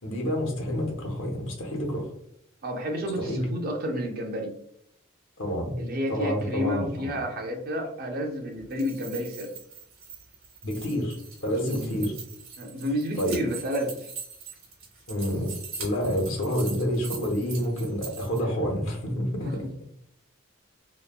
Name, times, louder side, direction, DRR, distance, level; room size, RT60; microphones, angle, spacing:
voice 1, 0.0-2.1 3.2-3.5 5.4-5.8 6.1-7.2 10.6-12.1 13.2-13.4 15.1-15.5 15.8-19.6, equal, 75° left, 1 dB, 0.8 m, -28 dB
voice 2, 2.6-4.5 5.8-9.5 12.6-14.1 19.4-19.7, equal, 45° right, 3 dB, 0.5 m, -30 dB
sound 1, 8.6-18.4, right 5 dB, 85° right, 1.2 m, -42 dB
3.0 x 2.2 x 2.2 m, 0.71 s
head